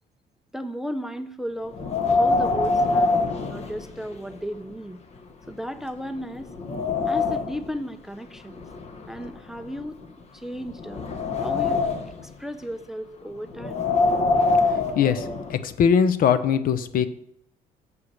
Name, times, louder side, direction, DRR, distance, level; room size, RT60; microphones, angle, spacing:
voice 1, 0.5-1.8 2.0-5.0 5.5-6.5 7.1-8.7 9.1-10.0 10.3-11.0 11.4-11.8 12.2-13.9, equal, ahead, 11 dB, 0.5 m, -35 dB
Wind, 1.7-4.3 4.7-4.8 5.5-5.6 6.1-7.7 8.5-10.1 10.6-12.2 13.5-15.6, left 3 dB, 40° left, 1.0 m, -24 dB
voice 2, 14.7-17.1, left 7 dB, 60° left, 12 dB, 0.6 m, -21 dB
7.1 x 4.8 x 6.3 m, 0.75 s
cardioid pair, 110°, 17 cm